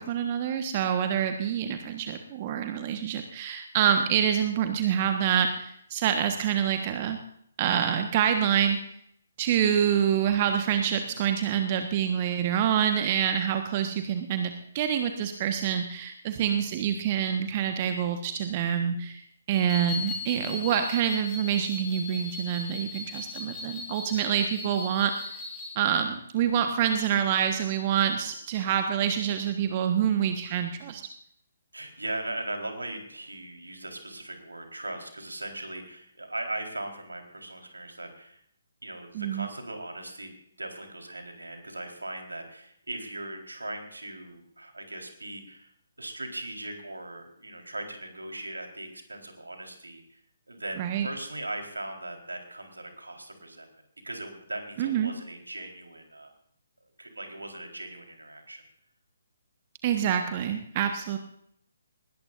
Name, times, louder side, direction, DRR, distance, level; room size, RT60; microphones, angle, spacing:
voice 1, 0.0-7.2 7.6-8.8 9.4-14.5 14.7-19.2 19.5-25.1 25.7-31.0 39.1-39.5 50.8-51.1 54.8-55.1 59.8-61.2, right 9 dB, 30° right, 6 dB, 1.4 m, -26 dB
sound 1, 19.5-25.7, left 3 dB, 10° left, 6.2 m, -38 dB
voice 2, 31.7-38.4 38.8-40.3 40.6-45.7 46.0-50.2 50.5-53.7 54.0-56.3 57.0-58.6, right 2 dB, 75° right, 3 dB, 4.3 m, -39 dB
20.5 x 18.5 x 2.6 m, 0.69 s
figure-of-eight pair, 135°, 0 cm